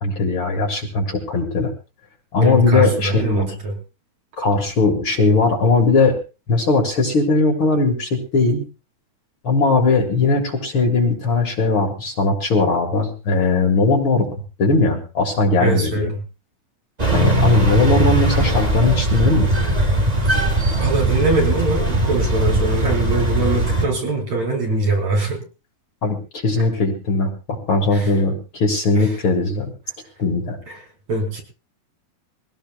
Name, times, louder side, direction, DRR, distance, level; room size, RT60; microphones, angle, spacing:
voice 1, 0.0-1.7 2.3-3.5 4.4-6.2 6.5-8.6 9.4-14.3 14.6-16.1 17.1-19.5 26.0-29.7 30.2-30.6, left 3 dB, 45° left, 2 dB, 2.6 m, -19 dB
voice 2, 2.4-3.7 15.6-16.2 20.8-25.4 27.9-28.1 29.0-29.1 30.7-30.8 31.1-31.4, right 3 dB, 60° right, 0 dB, 5.7 m, -22 dB
sound 1, 17.0-23.8, right 1 dB, 20° right, 1.0 m, -19 dB
23.0 x 17.5 x 2.4 m, 0.31 s
omnidirectional pair, 3.5 m